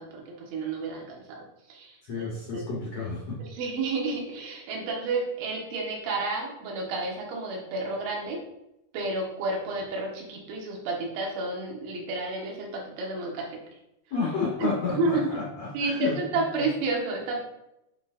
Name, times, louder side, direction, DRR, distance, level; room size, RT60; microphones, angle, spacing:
voice 1, 0.0-1.4 1.7-2.0 2.5-2.7 3.4-8.4 8.9-13.6 14.6-14.7 15.0-15.2 15.7-17.4, right 3 dB, 85° right, -1 dB, 3.6 m, -31 dB
voice 2, 2.0-3.4 14.1-16.2 16.6-16.7, left 4 dB, 85° left, -5 dB, 1.5 m, -31 dB
9.5 x 4.3 x 2.5 m, 0.85 s
omnidirectional pair, 5.0 m